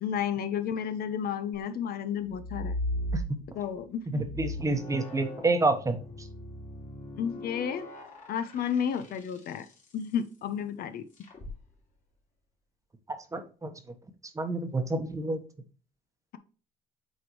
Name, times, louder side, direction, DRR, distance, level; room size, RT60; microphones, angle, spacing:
voice 1, 0.0-2.7 3.5-4.3 7.2-7.9 8.3-9.6 9.9-11.1, left 8 dB, 65° left, 11 dB, 0.8 m, -32 dB
sound 1, 2.3-3.7 4.2-9.7 11.2-11.5, left 1 dB, 45° left, 2.8 m, -37 dB
voice 2, 4.1-6.0 13.3-13.7 14.4-15.4, right 2 dB, 20° right, 8 dB, 1.1 m, -28 dB
8.1 x 4.4 x 3.1 m, 0.38 s
cardioid pair, 110°, 17 cm